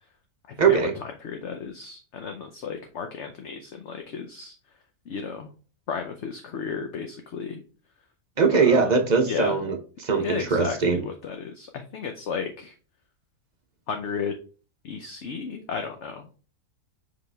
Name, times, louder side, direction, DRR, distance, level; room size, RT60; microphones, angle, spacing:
voice 1, 0.6-0.9 8.4-11.0, right 5 dB, 40° right, 5 dB, 0.7 m, -21 dB
voice 2, 1.2-4.5 5.1-5.5 5.9-7.6 8.5-8.8 9.3-9.6 10.2-10.8 11.0-12.7 13.9-14.3 14.8-16.3, left 6 dB, 55° left, 5 dB, 0.9 m, -33 dB
6.1 x 5.1 x 3.3 m, 0.37 s
omnidirectional pair, 1.7 m